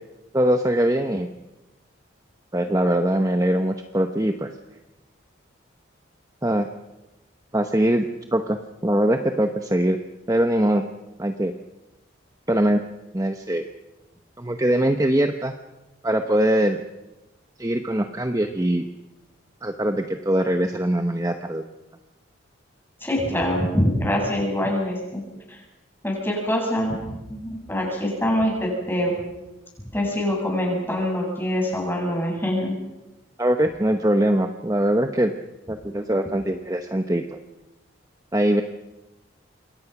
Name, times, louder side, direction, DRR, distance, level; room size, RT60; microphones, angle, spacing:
voice 1, 0.3-1.3 2.5-4.5 6.4-6.7 7.5-8.1 8.3-10.0 10.3-10.8 11.2-11.5 12.5-12.8 13.1-13.7 14.4-15.5 16.0-16.8 17.6-18.8 19.6-21.6 33.4-35.3 35.7-37.4 38.3-38.6, right 1 dB, 15° right, 6 dB, 0.9 m, -22 dB
voice 2, 23.0-25.2 25.5-25.6 26.0-27.0 27.3-29.1 29.9-32.7, equal, 10° left, -1 dB, 7.6 m, -24 dB
27.5 x 22.5 x 6.0 m, 0.99 s
head